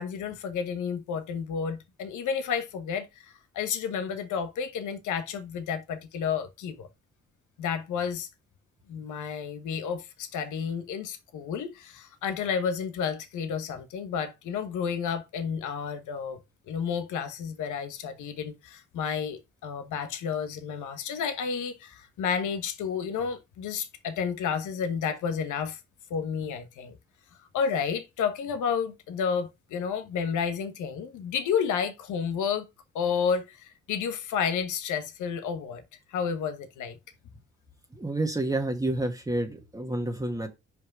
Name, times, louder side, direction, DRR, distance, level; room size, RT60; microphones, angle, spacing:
voice 1, 0.0-6.9 7.6-8.3 8.9-16.4 16.7-25.8 26.1-27.0 27.5-32.7 32.9-35.8 36.1-37.0, left 7 dB, 80° left, 1.3 m, -31 dB
voice 2, 37.9-40.5, right 2 dB, 10° right, 1.5 m, -29 dB
5.4 x 5.1 x 6.1 m
cardioid pair, 90°, 30 cm